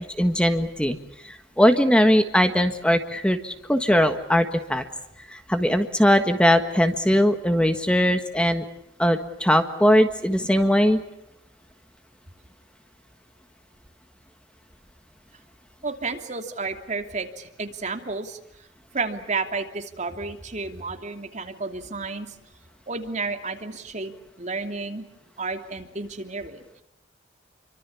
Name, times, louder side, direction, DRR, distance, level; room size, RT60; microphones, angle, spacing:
voice 1, 0.2-1.0 1.2-4.8 5.3-8.6 9.0-11.0, equal, 5° left, 7 dB, 1.5 m, -20 dB
voice 2, 15.8-18.4 18.9-22.3 22.9-24.1 24.4-25.0 25.4-26.8, right 3 dB, 40° right, 5 dB, 2.9 m, -31 dB
28.0 x 24.5 x 7.2 m, 0.85 s
head